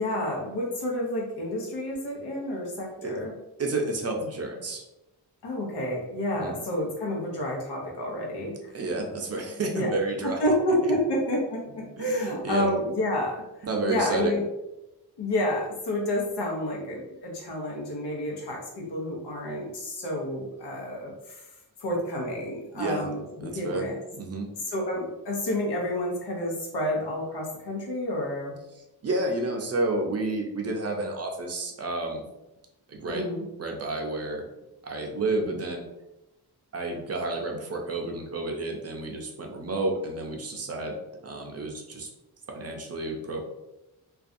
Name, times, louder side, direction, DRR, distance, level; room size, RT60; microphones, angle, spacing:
voice 1, 0.0-3.3 5.4-8.7 9.7-9.9 10.2-14.4 15.2-21.4 21.8-24.0 24.7-28.5 33.1-33.4, left 1 dB, 85° left, -1 dB, 0.8 m, -29 dB
voice 2, 3.6-4.8 6.3-6.6 8.7-10.5 10.8-10.9 12.0-12.7 13.6-14.4 22.7-23.1 23.4-23.9 24.2-24.5 28.7-32.2 32.9-33.3 33.6-34.4 34.8-35.9 36.7-40.9 41.2-42.1 42.5-43.4, right 2 dB, 40° right, 1 dB, 0.5 m, -30 dB
2.5 x 2.2 x 2.5 m, 0.97 s
wide cardioid pair, 110°, 40 cm